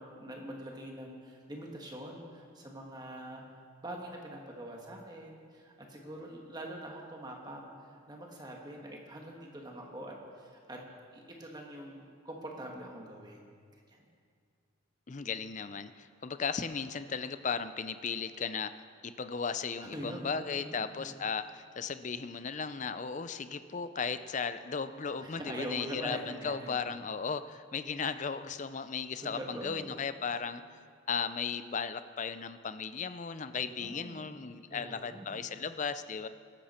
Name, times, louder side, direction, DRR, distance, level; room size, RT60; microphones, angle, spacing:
voice 1, 0.0-3.4 3.8-7.7 8.1-10.8 11.1-13.5 13.9-14.0 19.8-20.3 20.6-21.2 25.2-26.8 29.2-30.0 33.6-35.5, right 1 dB, 20° right, 0 dB, 1.7 m, -44 dB
voice 2, 15.1-30.6 31.1-36.3, left 5 dB, 35° left, 12 dB, 0.5 m, -36 dB
18.0 x 13.5 x 4.4 m, 2.2 s
head